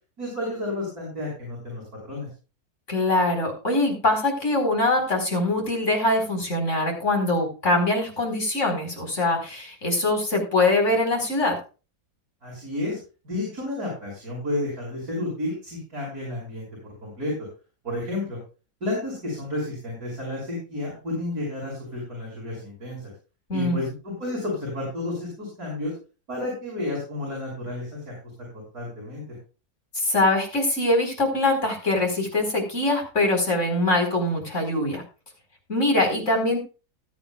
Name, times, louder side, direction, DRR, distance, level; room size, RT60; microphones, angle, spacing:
voice 1, 0.2-2.3 12.4-13.0 13.2-17.3 17.8-18.4 18.8-23.1 23.5-25.9 26.3-28.1 28.7-29.2, left 1 dB, 80° right, -4 dB, 6.5 m, -31 dB
voice 2, 2.9-11.6 23.5-23.8 29.9-35.0 35.7-36.6, left 2 dB, 50° left, 2 dB, 4.8 m, -23 dB
20.0 x 9.0 x 2.4 m, 0.33 s
omnidirectional pair, 1.6 m